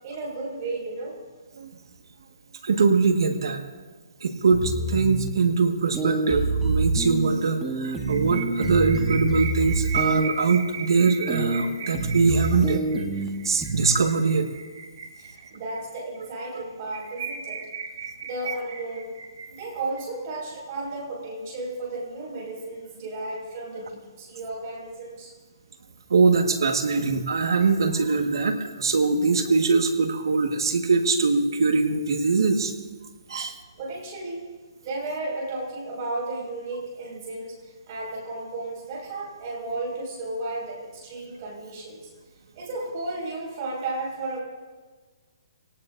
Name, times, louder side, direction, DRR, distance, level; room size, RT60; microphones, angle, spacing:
voice 1, 0.0-1.1 15.2-17.7 18.2-19.1 19.5-25.3 33.3-33.4 33.8-34.5 34.8-42.0 42.6-44.4, right 2 dB, 30° right, -2 dB, 5.7 m, -34 dB
voice 2, 2.6-3.6 4.2-13.0 13.4-14.5 26.1-32.7 33.3-33.5, right 4 dB, 75° right, 5 dB, 1.7 m, -22 dB
sound 1, 4.5-5.3 5.9-7.3 7.6-10.3 11.3-11.6 11.9-13.3 13.6-14.0, right 2 dB, 10° right, 1.4 m, -27 dB
sound 2, 7.8-15.8 16.2-16.3 16.5-16.6 16.9-20.0, right 6 dB, 50° right, 3.9 m, -37 dB
25.5 x 18.0 x 2.7 m, 1.4 s
hypercardioid pair, 165°, 2 cm